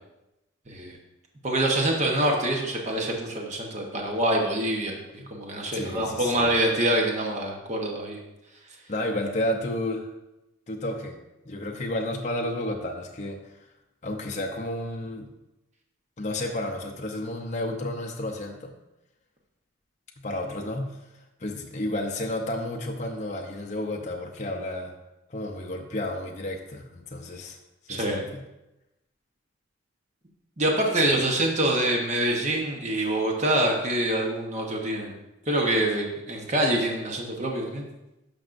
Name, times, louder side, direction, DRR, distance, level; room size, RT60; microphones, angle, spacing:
voice 1, 0.7-1.0 1.4-5.0 5.3-8.2 27.9-28.2 30.6-35.1 35.5-37.9, right 1 dB, 35° right, 0 dB, 1.0 m, -25 dB
voice 2, 5.7-6.5 8.9-10.1 10.7-11.2 11.5-13.6 14.0-15.3 16.2-18.7 20.2-21.0 21.4-24.9 25.3-27.6 27.9-28.4 31.0-31.2, left 1 dB, 35° left, 1 dB, 0.6 m, -31 dB
12.0 x 5.3 x 2.6 m, 0.96 s
head